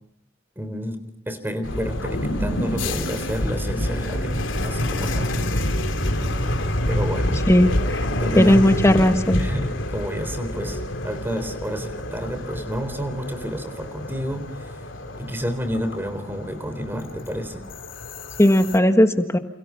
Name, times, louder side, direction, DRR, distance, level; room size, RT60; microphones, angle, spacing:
voice 1, 0.6-1.0 1.3-5.5 6.8-7.4 8.2-8.6 9.4-14.9 15.2-17.6, equal, 10° right, 9 dB, 3.6 m, -30 dB
sound 1, 1.6-18.8, left 1 dB, 75° left, 3.2 m, -28 dB
sound 2, 2.0-6.7, equal, 90° left, 5.3 m, -33 dB
voice 2, 7.5-8.0 8.4-9.4 18.4-19.4, left 1 dB, 15° left, 8 dB, 1.5 m, -16 dB
29.5 x 29.0 x 5.8 m, 0.72 s
head